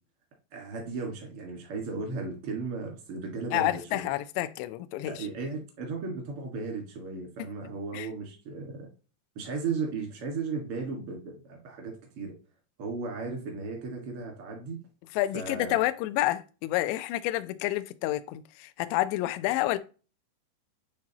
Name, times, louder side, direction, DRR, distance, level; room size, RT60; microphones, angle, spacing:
voice 1, 0.5-4.1 5.1-8.9 9.3-12.3 12.8-14.8 15.3-15.8, right 4 dB, 75° right, 1.3 m, -35 dB
voice 2, 3.5-5.3 7.9-8.1 15.1-19.8, left 16 dB, 85° left, 2.5 m, -29 dB
8.8 x 3.7 x 2.9 m
omnidirectional pair, 5.4 m